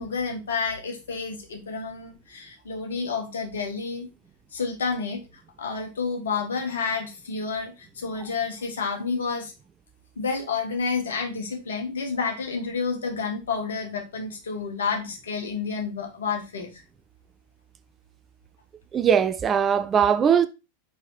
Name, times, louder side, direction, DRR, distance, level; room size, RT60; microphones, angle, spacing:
voice 1, 0.0-4.1 4.5-5.2 5.6-9.5 10.2-16.8, left 5 dB, 65° left, 1.8 m, -30 dB
voice 2, 18.9-20.5, right 8 dB, 25° right, 0.5 m, -20 dB
5.4 x 5.3 x 4.6 m
figure-of-eight pair, 90°, 0 cm